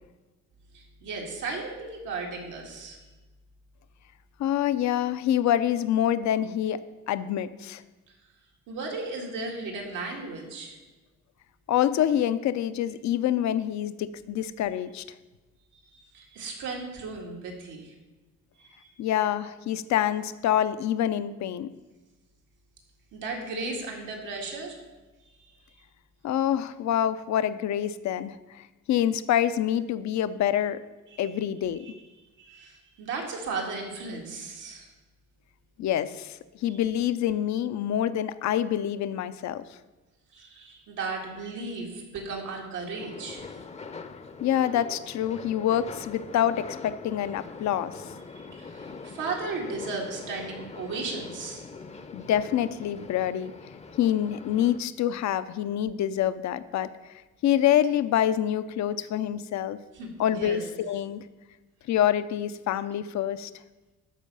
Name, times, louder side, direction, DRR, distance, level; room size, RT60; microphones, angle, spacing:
voice 1, 0.7-3.0 8.7-10.8 15.8-17.9 18.6-18.9 23.1-24.8 25.4-25.5 31.1-31.3 31.8-31.9 32.4-34.9 36.7-36.8 40.3-43.4 48.6-51.6 59.9-60.6, right 3 dB, 90° right, 0 dB, 2.0 m, -35 dB
voice 2, 4.4-7.8 11.7-15.0 19.0-21.7 26.2-30.8 31.2-31.9 35.8-39.6 44.4-47.9 52.1-53.5 54.0-56.9 57.4-59.8 60.2-61.2 61.9-63.5, left 11 dB, 65° left, 14 dB, 0.5 m, -26 dB
sound 1, 43.0-54.8, left 4 dB, 20° left, 0.6 m, -43 dB
12.5 x 4.7 x 5.4 m, 1.2 s
cardioid pair, 90°, 30 cm